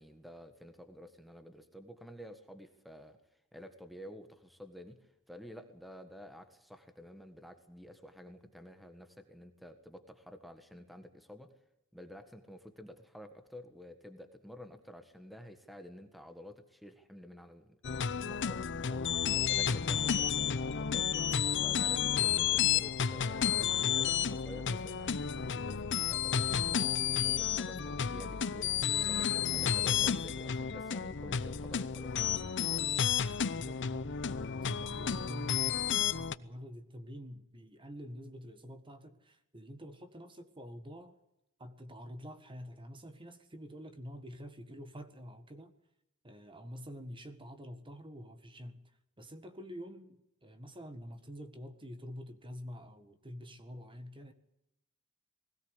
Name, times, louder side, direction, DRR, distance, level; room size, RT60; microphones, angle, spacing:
voice 1, 0.0-3.2 3.5-11.5 11.9-19.1 19.5-21.3 21.6-28.7 29.0-32.5, equal, ahead, 1.5 m, -51 dB
sound 1, 17.8-36.3, left 8 dB, 55° left, 0.8 m, -31 dB
voice 2, 33.5-41.2 41.6-45.7 46.2-54.3, equal, 25° right, 1.7 m, -47 dB
20.5 x 17.5 x 8.2 m
head